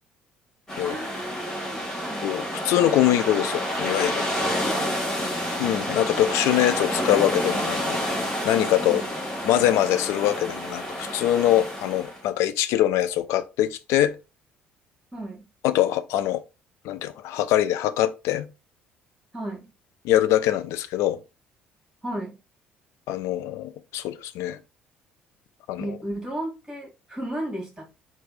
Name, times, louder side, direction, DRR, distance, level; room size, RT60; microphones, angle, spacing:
sound 1, 0.7-12.2, equal, 10° left, 1.9 m, -29 dB
voice 1, 0.8-2.3 4.5-5.6 8.8-9.1 15.1-15.4 19.3-19.7 22.0-22.4 25.8-28.0, right 1 dB, 10° right, 2.2 m, -34 dB
voice 2, 2.2-4.2 5.6-9.0 9.4-14.1 15.6-16.4 16.8-18.5 20.0-21.2 23.1-24.6 25.7-25.9, left 12 dB, 60° left, 0.4 m, -23 dB
4.2 x 2.3 x 4.0 m
figure-of-eight pair, 50°, 6 cm